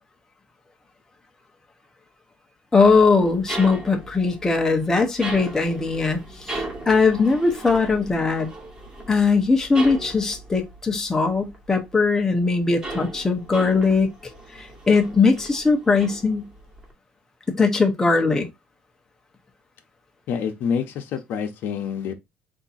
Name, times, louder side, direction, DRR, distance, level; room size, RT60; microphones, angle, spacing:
voice 1, 2.7-6.6 6.9-8.5 9.1-14.1 14.5-16.5 17.5-18.5, left 4 dB, 15° left, 0.9 m, -20 dB
sound 1, 2.8-11.9 12.2-16.9, right 2 dB, 20° right, 1.5 m, -37 dB
voice 2, 20.3-22.1, left 7 dB, 65° left, 0.9 m, -27 dB
3.6 x 2.8 x 4.1 m
cardioid pair, 140°, 4 cm